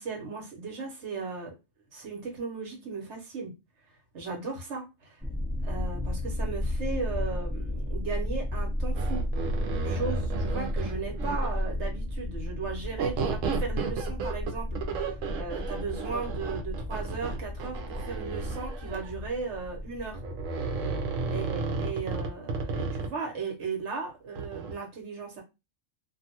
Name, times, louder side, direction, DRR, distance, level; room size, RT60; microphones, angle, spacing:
voice 1, 0.0-1.6 1.9-3.5 4.1-5.2 5.6-9.2 9.8-20.2 21.3-25.4, right 4 dB, 65° right, 1.2 m, -36 dB
sound 1, 5.2-21.6, left 1 dB, 10° right, 0.5 m, -33 dB
sound 2, 8.9-11.6 13.0-19.1 20.1-23.1 24.4-24.7, right 4 dB, 80° right, 1.0 m, -33 dB
2.6 x 2.4 x 2.8 m
omnidirectional pair, 1.3 m